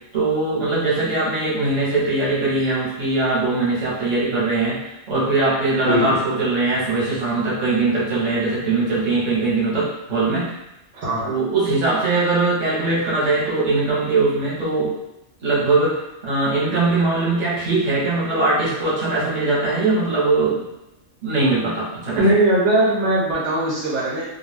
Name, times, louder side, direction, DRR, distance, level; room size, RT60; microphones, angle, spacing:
voice 1, 0.1-10.5 11.2-14.9 15.4-20.7 21.2-22.3, right 3 dB, 40° right, -7 dB, 0.9 m, -21 dB
voice 2, 10.9-11.3 22.2-24.2, right 1 dB, 70° right, -6 dB, 1.0 m, -19 dB
2.3 x 2.2 x 3.3 m, 0.91 s
omnidirectional pair, 1.3 m